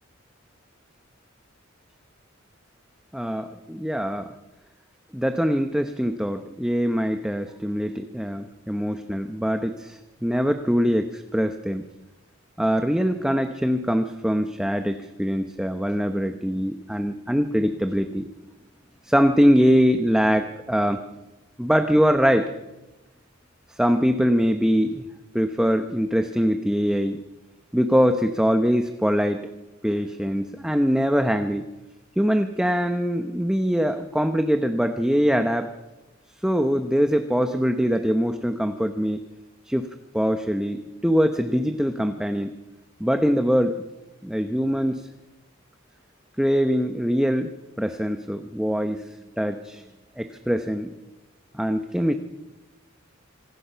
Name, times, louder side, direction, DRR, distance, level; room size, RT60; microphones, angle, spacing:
voice 1, 3.1-4.3 5.1-11.8 12.6-18.3 19.0-21.0 21.6-22.5 23.7-25.0 25.3-27.2 27.7-29.4 29.8-31.7 32.2-35.7 36.4-39.2 39.6-39.9 40.1-42.5 43.0-43.8 44.2-45.1 46.4-47.5 47.8-49.9 50.2-50.9 51.5-52.1, equal, 5° right, 7 dB, 0.8 m, -23 dB
26.5 x 18.0 x 5.8 m, 1.1 s
head